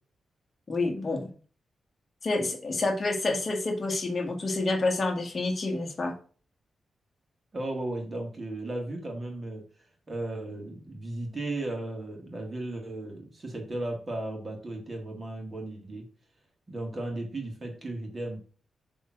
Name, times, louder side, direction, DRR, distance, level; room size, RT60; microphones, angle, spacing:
voice 1, 0.7-1.3 2.2-6.1, left 2 dB, 30° left, 2 dB, 1.7 m, -28 dB
voice 2, 7.5-9.6 10.1-16.1 16.7-18.4, right 2 dB, 25° right, 2 dB, 2.2 m, -35 dB
7.0 x 3.7 x 6.0 m, 0.40 s
wide cardioid pair, 160°, 0 cm